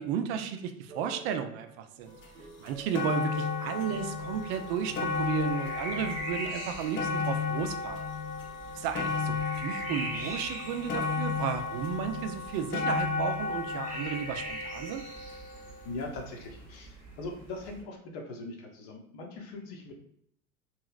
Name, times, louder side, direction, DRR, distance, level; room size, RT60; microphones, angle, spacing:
voice 1, 0.0-2.1 2.6-8.1 8.7-15.0, right 8 dB, 40° right, 8 dB, 0.4 m, -34 dB
sound 1, 0.9-7.3, right 2 dB, 85° right, 0.6 m, -50 dB
sound 2, 2.2-2.3 2.7-15.8 16.6-16.7, left 4 dB, 30° left, 0.6 m, -33 dB
sound 3, 3.9-17.8, right 1 dB, 20° right, 1.2 m, -43 dB
voice 2, 15.8-19.9, left 2 dB, 50° left, 2 dB, 0.9 m, -41 dB
3.0 x 2.8 x 2.4 m, 0.69 s
figure-of-eight pair, 85°, 43 cm